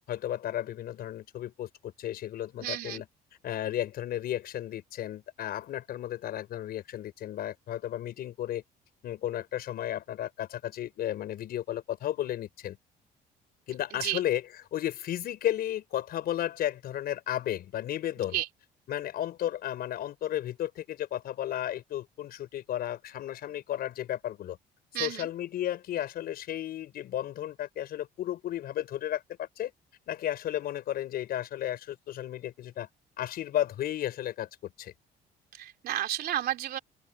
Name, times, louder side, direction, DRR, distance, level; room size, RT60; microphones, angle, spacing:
voice 1, 0.1-3.1 3.4-8.6 9.0-12.8 13.7-14.4 14.7-18.4 18.9-24.6 24.9-29.7 30.1-32.9 33.2-34.9, left 12 dB, 65° left, 5.2 m, -33 dB
voice 2, 2.6-3.0 13.9-14.2 18.3-18.5 24.9-25.3 35.5-36.8, right 12 dB, 65° right, 3.0 m, -32 dB
open air
cardioid pair, 110°, 17 cm